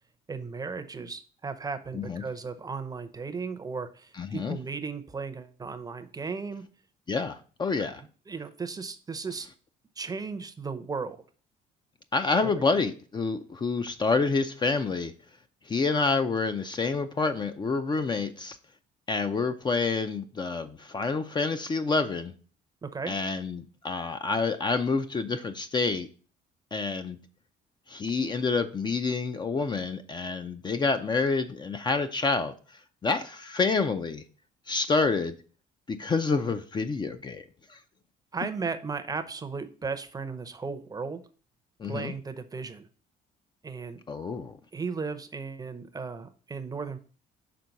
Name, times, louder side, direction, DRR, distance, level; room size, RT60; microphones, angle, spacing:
voice 1, 0.3-6.6 8.3-9.5 10.0-11.2 12.4-12.5 22.8-23.2 38.3-41.2 41.9-42.9 43.6-44.0 44.7-47.0, right 4 dB, 20° right, 9 dB, 0.6 m, -35 dB
voice 2, 4.2-4.6 7.1-8.0 12.1-15.1 15.7-18.6 19.1-22.3 23.1-26.1 26.7-27.2 27.9-32.5 33.0-34.2 34.7-35.3 35.9-37.4 37.7-37.8 41.8-42.1 44.1-44.6, left 4 dB, 25° left, 8 dB, 0.5 m, -28 dB
6.0 x 3.7 x 5.2 m, 0.40 s
cardioid pair, 110°, 17 cm